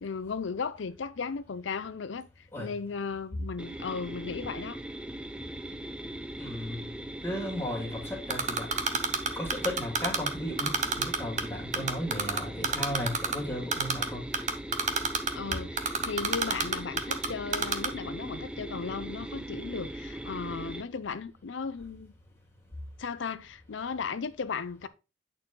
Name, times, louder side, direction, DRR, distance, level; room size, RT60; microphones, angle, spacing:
voice 1, 0.0-4.8 15.4-22.1 23.0-24.9, left 5 dB, 85° left, 0.5 m, -36 dB
sound 1, 3.6-20.8, right 1 dB, 5° right, 0.5 m, -40 dB
voice 2, 6.4-6.9 7.2-8.7 9.4-14.2 15.5-15.6, equal, 15° left, 2.2 m, -35 dB
Typing, 8.3-10.3 10.6-11.4 11.7-13.3 13.7-14.1 14.3-17.3 17.5-17.9, right 5 dB, 40° right, 0.8 m, -27 dB
9.0 x 4.2 x 3.7 m
head